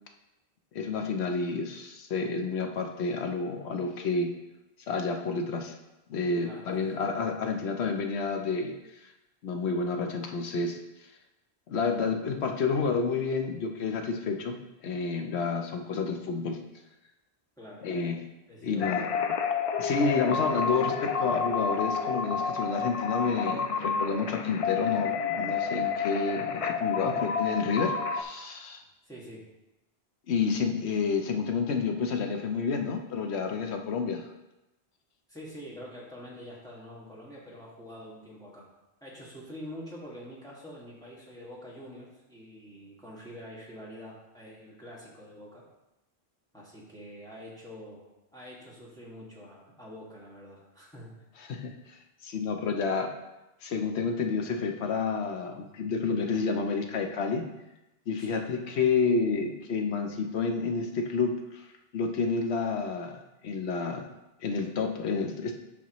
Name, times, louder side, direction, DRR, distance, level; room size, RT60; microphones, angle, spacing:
voice 1, 0.7-4.3 4.9-5.7 6.1-9.1 9.4-10.8 11.7-16.6 17.8-18.2 18.6-19.1 19.8-28.8 30.3-34.3 51.4-53.1 53.6-57.4 58.1-61.6 61.9-64.1 64.4-65.5, left 4 dB, 90° left, 4 dB, 1.0 m, -30 dB
voice 2, 6.4-7.0 17.6-17.9 18.5-19.0 27.1-27.3 29.0-29.5 35.3-38.7 39.0-45.6 46.5-48.1 48.3-51.1 58.2-58.5, equal, 5° left, -6 dB, 1.8 m, -46 dB
sound 1, 18.8-28.2, left 5 dB, 55° left, 0.4 m, -30 dB
8.4 x 5.8 x 3.0 m, 0.96 s
omnidirectional pair, 1.1 m